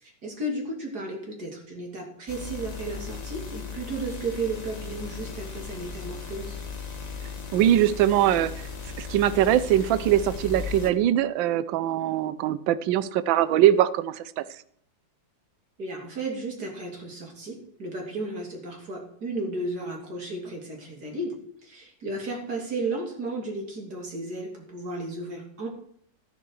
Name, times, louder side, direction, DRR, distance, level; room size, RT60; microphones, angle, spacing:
voice 1, 0.0-6.6 15.8-21.3 21.6-25.7, right 2 dB, 55° right, 1 dB, 3.5 m, -34 dB
sound 1, 2.3-10.9, left 5 dB, 25° left, 1.2 m, -37 dB
voice 2, 7.5-8.5 9.0-14.4, right 12 dB, 80° right, 15 dB, 1.4 m, -22 dB
12.0 x 11.5 x 4.7 m, 0.65 s
omnidirectional pair, 2.1 m